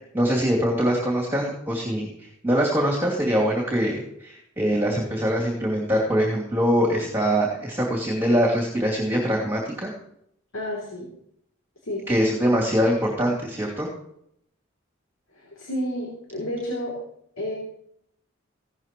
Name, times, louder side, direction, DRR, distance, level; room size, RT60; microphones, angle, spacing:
voice 1, 0.1-9.9 12.1-13.9, equal, 10° right, -4 dB, 2.7 m, -23 dB
voice 2, 10.5-11.1 11.8-12.2 15.3-17.0 17.4-17.6, left 1 dB, 85° left, -2 dB, 3.1 m, -31 dB
16.5 x 13.0 x 3.1 m, 0.73 s
head